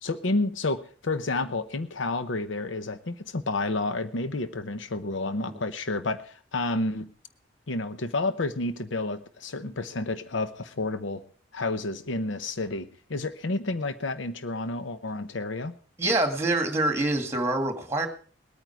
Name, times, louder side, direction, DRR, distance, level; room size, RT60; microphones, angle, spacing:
voice 1, 0.0-7.1 7.7-11.2 11.5-15.8, left 2 dB, 85° left, 0.8 m, -30 dB
voice 2, 16.0-18.1, right 2 dB, 15° right, 2.1 m, -26 dB
20.5 x 9.2 x 4.7 m
head